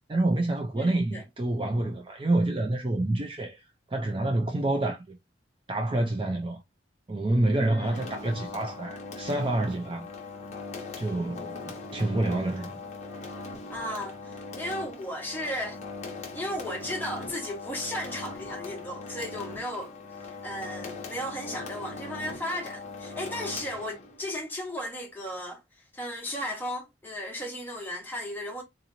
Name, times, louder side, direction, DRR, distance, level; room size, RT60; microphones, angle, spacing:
voice 1, 0.1-3.6 3.9-5.1 5.7-6.6 7.1-10.1 11.0-11.6 11.9-12.8, right 2 dB, 25° right, 0.4 m, -27 dB
voice 2, 0.7-1.2 7.7-8.1 13.7-15.8 16.3-19.9 20.4-25.6 25.9-28.6, left 1 dB, 10° left, 1.1 m, -35 dB
sound 1, 7.8-24.3, left 3 dB, 35° left, 0.9 m, -40 dB
3.9 x 2.9 x 2.6 m
head